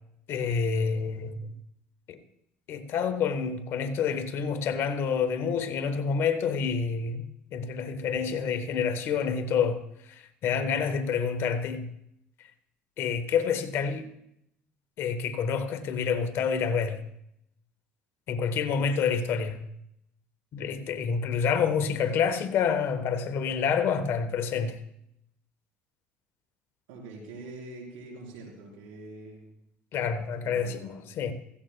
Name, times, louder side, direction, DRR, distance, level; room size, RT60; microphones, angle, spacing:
voice 1, 0.3-1.5 2.1-2.2 2.7-11.9 13.0-14.1 15.0-17.0 18.3-19.6 20.5-24.8 29.9-31.3, left 6 dB, 60° left, 1.2 m, -28 dB
voice 2, 26.9-29.5 30.4-31.1, right 2 dB, 90° right, 3.9 m, -44 dB
16.0 x 15.0 x 2.3 m
supercardioid pair, 85°, 5 cm